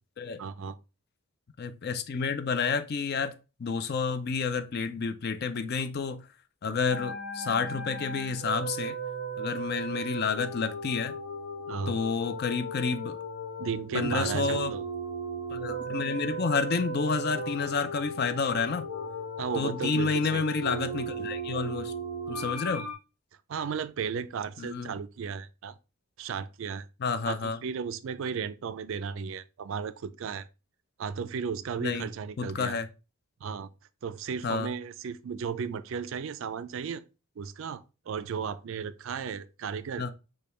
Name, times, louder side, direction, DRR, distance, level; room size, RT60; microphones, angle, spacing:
voice 1, 0.4-0.8 11.7-12.0 13.6-14.8 19.4-20.4 23.5-25.8 26.2-26.9 27.2-30.5 31.0-32.8 33.4-33.7 34.0-37.0 37.4-40.0, right 6 dB, 60° right, 0.3 m, -34 dB
voice 2, 1.6-6.2 6.6-9.0 9.4-11.2 11.9-13.2 13.9-14.7 15.5-18.9 19.6-21.9 22.3-22.9 24.6-24.9 27.0-27.6 31.8-32.1 32.4-32.9 34.4-34.7 40.0-40.1, left 5 dB, 45° left, 0.4 m, -30 dB
sound 1, 6.9-22.9, right 2 dB, 80° left, 1.1 m, -36 dB
5.1 x 2.3 x 4.2 m
head